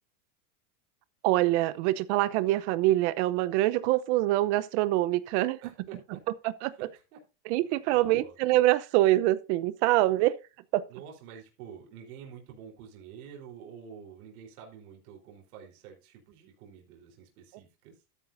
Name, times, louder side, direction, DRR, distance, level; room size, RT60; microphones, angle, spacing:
voice 1, 1.2-5.6 6.4-6.7 7.5-10.4 10.7-10.8, right 16 dB, 50° right, 0.9 m, -25 dB
voice 2, 5.6-6.2 6.8-6.9 7.1-7.2 7.9-8.4 10.9-17.9, right 7 dB, 65° right, 4.1 m, -48 dB
13.0 x 9.6 x 2.7 m
supercardioid pair, 160°, 46 cm